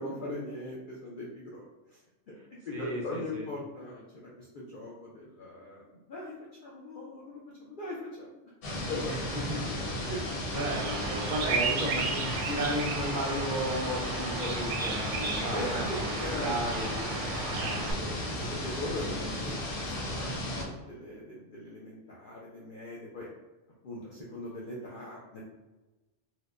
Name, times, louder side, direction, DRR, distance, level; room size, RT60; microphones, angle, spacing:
voice 1, 0.0-2.0 2.3-2.4 2.6-6.4 6.6-8.3 8.9-9.2 10.1-10.6 15.5-16.6 17.3-17.7 18.3-23.3 23.8-25.4, left 1 dB, 55° left, -5 dB, 0.6 m, -40 dB
voice 2, 2.7-3.5 9.1-10.0 10.5-16.9 17.5-18.2, right 1 dB, 50° right, 0 dB, 0.7 m, -34 dB
sound 1, 8.6-20.6, left 1 dB, 85° left, 1.2 m, -35 dB
Bird vocalization bird call bird song, 10.5-17.9, right 4 dB, 85° right, 0.9 m, -34 dB
4.3 x 2.1 x 2.4 m, 1.1 s
omnidirectional pair, 1.2 m